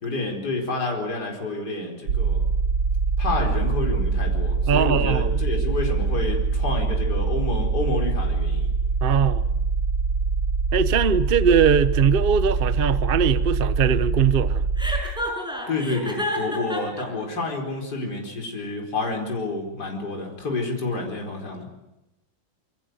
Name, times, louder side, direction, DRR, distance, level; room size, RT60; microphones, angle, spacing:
voice 1, 0.0-2.4 3.2-8.7 15.7-21.7, left 2 dB, 50° left, 5.1 m, -29 dB
sound 1, 2.1-15.0, right 4 dB, 80° right, 2.7 m, -24 dB
voice 2, 4.7-5.4 9.0-9.4 10.7-14.6, right 7 dB, 45° right, 0.7 m, -21 dB
Chuckle chortle, 14.8-17.0, equal, ahead, 6.0 m, -29 dB
26.5 x 24.5 x 8.0 m
omnidirectional pair, 2.3 m